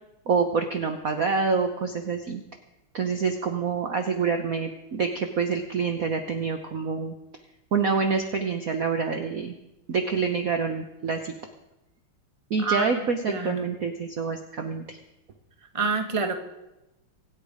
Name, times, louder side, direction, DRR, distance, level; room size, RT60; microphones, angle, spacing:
voice 1, 0.3-2.4 2.9-7.1 7.7-9.5 9.9-11.3 12.5-15.0, right 5 dB, 50° right, 6 dB, 1.2 m, -27 dB
voice 2, 12.6-13.0 13.3-13.6 15.7-16.3, right 4 dB, 15° right, 5 dB, 1.3 m, -27 dB
25.0 x 8.5 x 5.0 m, 0.94 s
omnidirectional pair, 2.4 m